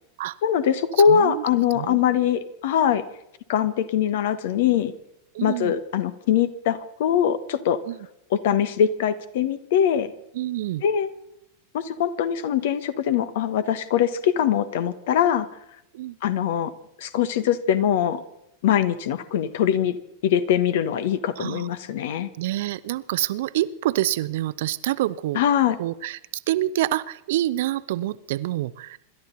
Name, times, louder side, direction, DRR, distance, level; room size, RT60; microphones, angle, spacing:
voice 1, 0.4-3.0 3.5-4.9 5.4-7.8 8.4-10.1 10.8-11.1 11.7-15.5 16.2-16.7 17.0-18.2 18.6-20.0 20.2-22.3 25.3-25.8, left 9 dB, 55° left, 14 dB, 1.4 m, -22 dB
voice 2, 1.1-1.4 1.7-2.0 5.3-5.7 7.9-8.1 10.3-10.8 15.9-16.2 21.4-21.7 22.4-25.4 25.8-29.0, right 14 dB, 55° right, 16 dB, 0.7 m, -27 dB
26.5 x 13.0 x 4.0 m, 0.81 s
figure-of-eight pair, 90°, 0 cm